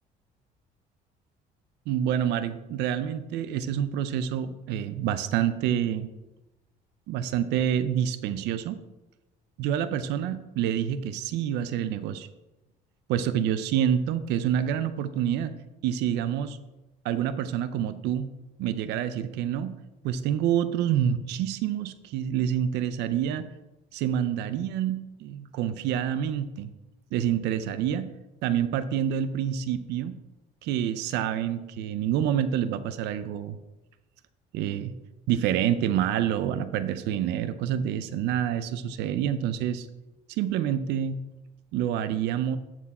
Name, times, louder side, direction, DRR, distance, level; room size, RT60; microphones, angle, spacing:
voice 1, 1.9-6.1 7.1-8.8 9.6-12.3 13.1-15.5 15.8-16.6 17.0-18.3 18.6-19.7 20.0-23.5 23.9-26.7 27.1-28.1 28.4-30.2 30.6-33.6 34.5-34.9 35.3-39.9 40.3-41.2 41.7-42.6, right 9 dB, 85° right, 12 dB, 0.5 m, -27 dB
11.0 x 4.6 x 4.2 m, 1.0 s
cardioid pair, 110°, 17 cm